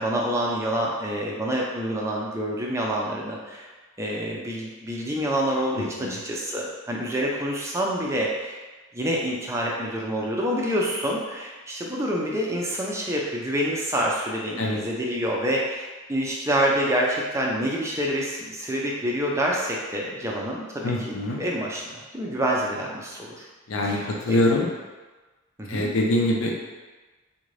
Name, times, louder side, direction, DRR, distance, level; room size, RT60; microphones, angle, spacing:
voice 1, 0.0-3.7 4.0-8.6 8.9-21.8 22.1-23.5 23.8-24.4 25.6-25.9, equal, 15° right, -2 dB, 0.4 m, -27 dB
voice 2, 5.8-6.2 14.6-14.8 20.8-21.4 23.7-24.7 25.7-26.5, left 1 dB, 70° left, 0 dB, 0.5 m, -24 dB
3.6 x 2.6 x 3.2 m, 1.2 s
head